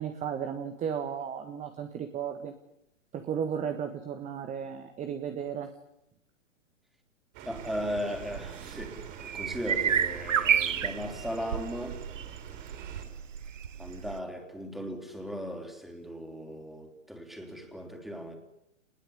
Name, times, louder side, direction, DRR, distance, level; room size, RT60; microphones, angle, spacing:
voice 1, 0.0-2.5 3.1-5.7, right 8 dB, 20° right, 7 dB, 1.6 m, -34 dB
sound 1, 7.3-13.0, right 8 dB, 35° right, 5.3 m, -46 dB
voice 2, 7.4-12.0 13.8-18.4, equal, ahead, 3 dB, 3.9 m, -37 dB
sound 2, 7.6-14.2, right 8 dB, 80° right, 1.2 m, -31 dB
26.5 x 21.0 x 9.9 m, 0.83 s
hypercardioid pair, 125°, 37 cm